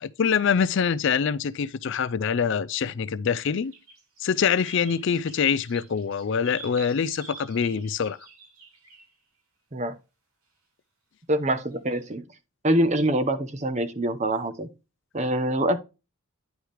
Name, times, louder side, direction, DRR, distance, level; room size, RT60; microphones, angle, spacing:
voice 1, 0.0-3.7 4.2-8.2, left 6 dB, 55° left, 0.4 m, -25 dB
sound 1, 3.4-3.5 3.7-9.1 11.9-12.1, right 4 dB, 80° right, 5.2 m, -47 dB
voice 2, 11.3-12.2 12.6-14.7 15.1-15.8, right 1 dB, 30° right, 0.8 m, -25 dB
10.0 x 4.7 x 3.3 m
head